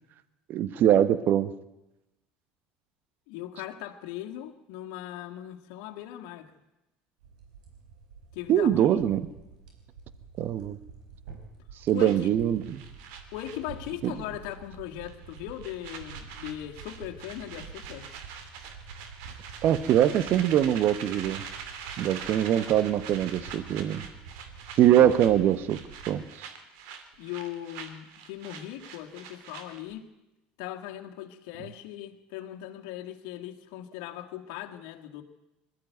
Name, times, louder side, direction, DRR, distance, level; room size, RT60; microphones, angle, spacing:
voice 1, 0.5-1.5 8.5-9.3 10.4-10.8 11.9-12.8 14.0-14.2 19.6-21.4 22.0-24.1 24.8-25.8 26.1-26.5, right 11 dB, 55° right, 15 dB, 1.2 m, -23 dB
voice 2, 3.3-6.5 8.3-9.0 11.9-12.3 13.3-18.1 24.9-25.1 27.2-30.1 30.6-35.2, left 12 dB, 75° left, 3 dB, 1.9 m, -39 dB
sound 1, 7.2-26.2, right 5 dB, 90° right, 4.6 m, -48 dB
sound 2, 12.0-14.2 14.5-14.7 15.0-29.9, right 7 dB, 75° right, 2.7 m, -44 dB
21.0 x 14.0 x 9.3 m, 0.96 s
supercardioid pair, 85°, 4 cm